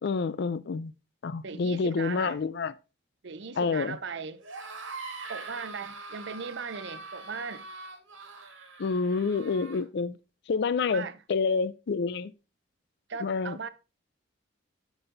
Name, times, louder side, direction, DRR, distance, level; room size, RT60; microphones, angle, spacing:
voice 1, 0.0-0.9 1.2-2.7 3.6-4.0 8.8-10.2 10.5-12.3 13.2-13.6, left 4 dB, 60° left, 0.4 m, -28 dB
voice 2, 1.4-2.4 3.2-4.4 5.3-7.6 10.9-11.2 13.1-13.7, right 5 dB, 60° right, 0.6 m, -38 dB
sound 1, 4.4-9.8, right 3 dB, 80° right, 1.7 m, -43 dB
10.0 x 4.1 x 3.9 m
head